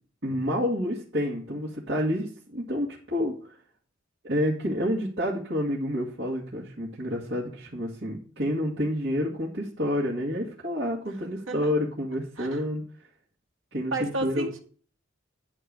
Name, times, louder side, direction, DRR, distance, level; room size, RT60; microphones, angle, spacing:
voice 1, 0.2-3.6 4.2-12.8 13.7-14.5, equal, 60° right, -6 dB, 2.1 m, -29 dB
voice 2, 13.9-14.6, right 2 dB, 80° right, 5 dB, 1.7 m, -32 dB
10.0 x 4.6 x 6.5 m, 0.42 s
head